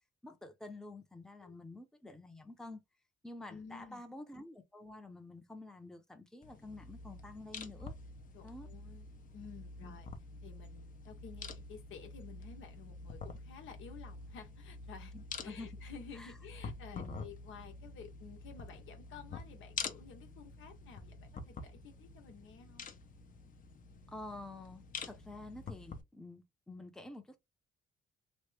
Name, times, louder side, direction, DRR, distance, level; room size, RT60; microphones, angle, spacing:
voice 1, 0.2-2.8 3.2-7.9 8.4-8.7 9.8-10.0 15.1-15.7 16.1-16.3 16.9-17.2 24.1-27.4, left 2 dB, 5° left, 0.7 m, -49 dB
voice 2, 3.5-4.0 8.3-9.1 9.3-10.1 10.4-15.1 15.4-22.9, left 6 dB, 80° left, 1.0 m, -52 dB
sound 1, 6.4-26.0, left 4 dB, 40° left, 0.7 m, -47 dB
3.0 x 2.1 x 3.3 m
cardioid pair, 90°, 20 cm